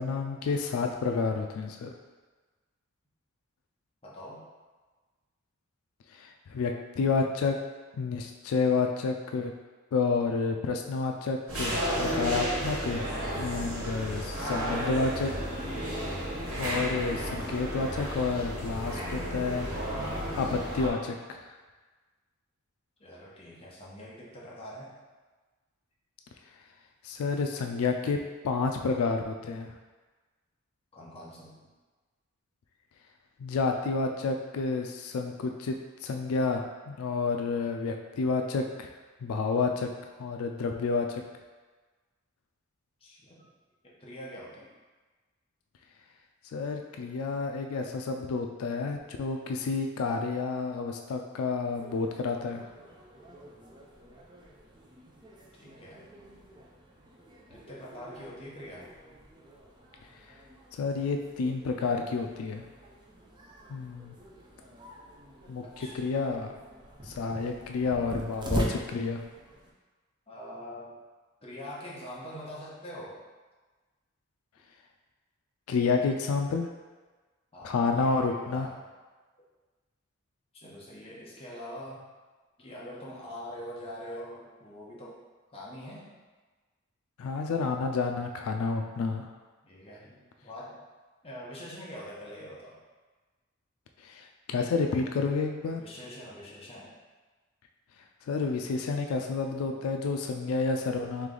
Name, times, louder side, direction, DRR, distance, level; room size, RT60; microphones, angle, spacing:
voice 1, 0.0-1.9 6.1-7.6 8.0-9.5 9.9-13.1 13.3-15.3 16.6-19.7 20.3-21.5 27.0-29.7 33.4-35.8 36.0-38.9 39.2-39.9 40.2-41.2 46.5-52.7 60.7-62.6 63.7-64.2 65.5-66.5 67.0-69.2 75.7-76.7 77.6-78.7 87.2-89.3 94.0-95.8 98.3-101.3, left 4 dB, 90° left, 4 dB, 0.3 m, -30 dB
voice 2, 4.0-4.5 23.0-24.9 30.9-31.7 43.0-43.4 43.8-44.7 55.6-56.1 57.5-58.9 65.8-66.1 70.3-70.9 71.4-73.2 77.5-78.8 80.5-82.1 82.6-85.2 85.5-86.1 89.6-90.8 91.2-92.8 95.8-96.9, equal, 30° left, -5 dB, 0.8 m, -44 dB
sound 1, 11.5-20.9, equal, 85° right, 1.4 m, -33 dB
sound 2, 51.7-69.7, right 1 dB, 20° right, 0.5 m, -43 dB
3.3 x 3.2 x 3.8 m, 1.3 s
head